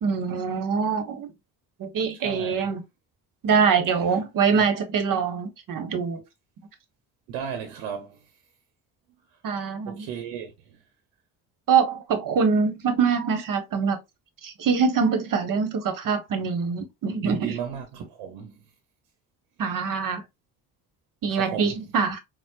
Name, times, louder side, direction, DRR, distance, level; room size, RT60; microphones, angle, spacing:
voice 1, 0.0-1.3 1.8-2.8 3.4-6.2 9.4-10.1 11.7-14.0 14.4-17.6 19.6-20.2 21.2-22.2, right 6 dB, 50° right, 1.0 m, -24 dB
voice 2, 2.2-2.7 4.5-4.6 7.3-8.2 9.9-10.8 17.2-18.6 21.3-21.8, right 8 dB, 80° right, 0.8 m, -35 dB
4.2 x 2.1 x 2.2 m
supercardioid pair, 60°, 42 cm